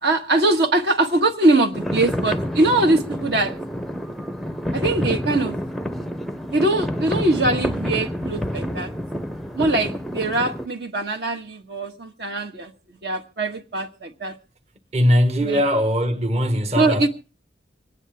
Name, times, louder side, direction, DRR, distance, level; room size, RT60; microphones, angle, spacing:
voice 1, 0.0-3.5 4.7-5.6 6.5-8.9 9.5-12.7 13.0-14.3 15.4-15.6 16.7-17.1, right 2 dB, 60° right, 1.5 m, -22 dB
sound 1, 1.7-10.7, equal, ahead, 0.6 m, -28 dB
voice 2, 14.9-17.1, equal, 35° right, 1.4 m, -20 dB
26.0 x 9.7 x 3.5 m
head